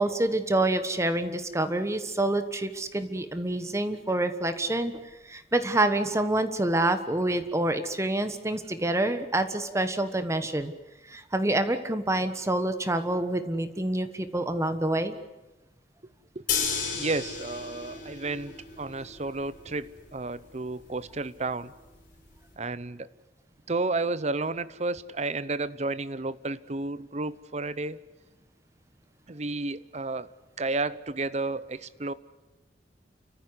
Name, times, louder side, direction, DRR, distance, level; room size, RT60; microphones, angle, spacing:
voice 1, 0.0-4.9 5.3-10.7 11.1-15.2, right 1 dB, 15° right, 9 dB, 1.3 m, -27 dB
voice 2, 16.3-21.7 22.6-23.1 23.7-28.0 29.3-30.3 30.6-32.1, right 3 dB, 40° right, 15 dB, 0.9 m, -32 dB
sound 1, 16.5-22.5, left 6 dB, 50° left, 5.6 m, -35 dB
29.5 x 15.0 x 9.8 m, 1.1 s
head